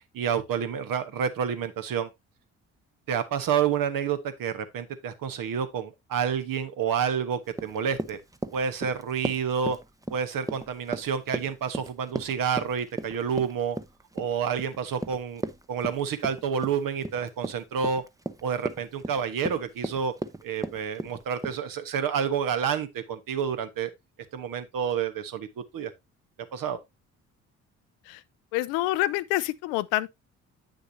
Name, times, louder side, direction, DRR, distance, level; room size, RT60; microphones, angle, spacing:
voice 1, 0.1-2.1 3.1-8.2 8.5-9.8 10.1-13.8 14.1-15.4 15.7-18.0 18.4-20.1 20.4-23.9 24.3-25.9 26.5-26.8, right 7 dB, 55° right, 1.3 m, -29 dB
Run, 7.5-21.6, right 2 dB, 10° right, 0.8 m, -36 dB
voice 2, 28.5-30.1, left 17 dB, 75° left, 0.6 m, -27 dB
8.7 x 6.5 x 2.7 m
hypercardioid pair, 45°, 39 cm